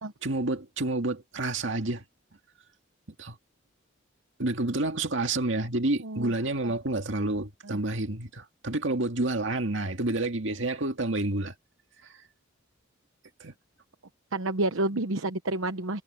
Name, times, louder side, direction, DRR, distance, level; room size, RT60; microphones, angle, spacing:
voice 1, 0.2-2.0 3.2-3.4 4.4-11.5 13.4-13.5, right 2 dB, 70° right, 2.1 m, -29 dB
voice 2, 14.3-16.0, right 2 dB, 85° right, 1.0 m, -29 dB
head